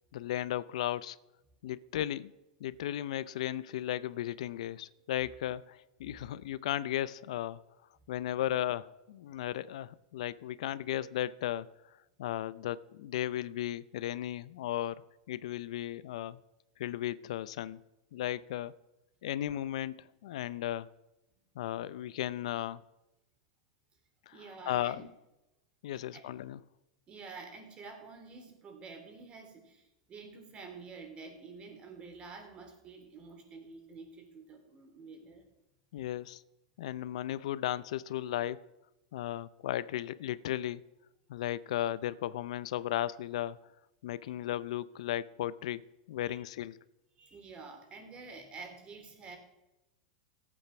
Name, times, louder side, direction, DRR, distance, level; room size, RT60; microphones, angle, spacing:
voice 1, 0.1-1.2 1.6-2.3 2.6-7.6 8.1-11.7 12.2-15.0 15.3-16.4 16.8-17.8 18.1-18.7 19.2-20.9 21.6-22.8 24.3-24.4 24.7-25.0 25.8-26.6 35.9-36.4 36.8-38.7 39.1-40.8 41.3-43.6 44.0-46.8, left 12 dB, 70° left, 0.5 m, -35 dB
voice 2, 24.3-25.0 25.9-26.2 27.1-35.5 44.2-44.3 46.2-46.4 47.2-49.4, right 4 dB, 30° right, 3.1 m, -49 dB
15.0 x 8.5 x 5.8 m
hypercardioid pair, 115°, 4 cm